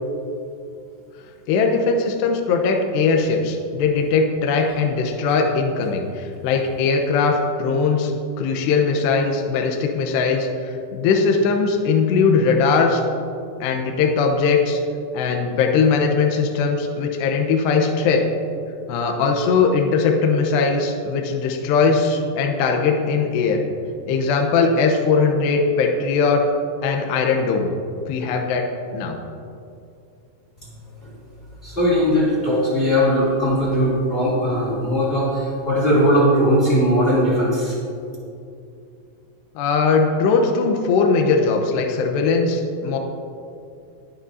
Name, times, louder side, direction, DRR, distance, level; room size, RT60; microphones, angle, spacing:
voice 1, 1.5-8.1 8.4-13.0 13.6-14.8 15.1-18.3 18.9-23.6 24.1-26.5 26.8-27.7 28.1-29.2 39.6-43.0, left 4 dB, 75° left, 3 dB, 2.6 m, -20 dB
voice 2, 31.6-37.8, equal, 20° left, -7 dB, 1.7 m, -19 dB
21.0 x 9.0 x 2.7 m, 2.5 s
omnidirectional pair, 5.9 m